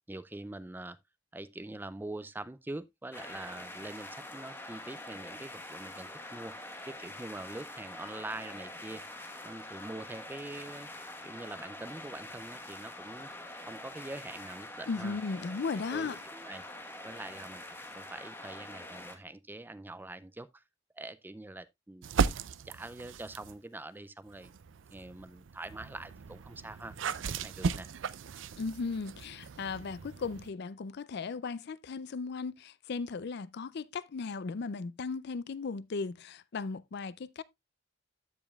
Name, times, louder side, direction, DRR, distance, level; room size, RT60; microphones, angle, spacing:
voice 1, 0.1-1.0 1.3-6.5 6.8-9.1 9.4-10.9 11.2-13.3 13.6-15.2 15.9-16.6 17.0-17.6 17.9-20.6 20.9-22.1 22.6-24.5 24.9-27.9, right 2 dB, 10° right, 0.4 m, -44 dB
sound 1, 3.1-19.2, left 1 dB, 10° left, 1.3 m, -45 dB
voice 2, 14.9-16.2 28.6-37.4, left 4 dB, 60° left, 0.4 m, -36 dB
sound 2, 22.0-23.6 24.3-30.5, right 5 dB, 70° right, 0.5 m, -36 dB
14.0 x 5.1 x 2.3 m
head